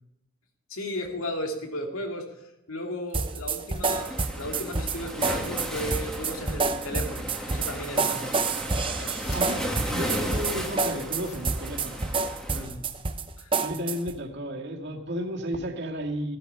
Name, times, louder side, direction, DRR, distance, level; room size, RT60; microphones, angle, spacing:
voice 1, 0.7-2.3 2.7-8.4 8.7-9.2 12.5-12.8 13.4-13.5, left 1 dB, 85° left, 3 dB, 2.4 m, -35 dB
sound 1, 3.1-3.2 3.7-4.2 5.2-5.4 5.7-5.8 6.7-6.9 7.6-7.7 9.1-11.0 11.2-11.4, left 4 dB, 35° left, 3.8 m, -46 dB
sound 2, 3.1-14.2, right 4 dB, 25° right, 0.8 m, -28 dB
Waves surf, 3.9-12.6, equal, 5° left, 1.9 m, -35 dB
voice 2, 9.3-12.0 13.6-16.4, equal, 55° right, 0 dB, 2.3 m, -33 dB
15.5 x 13.5 x 5.6 m, 0.85 s
head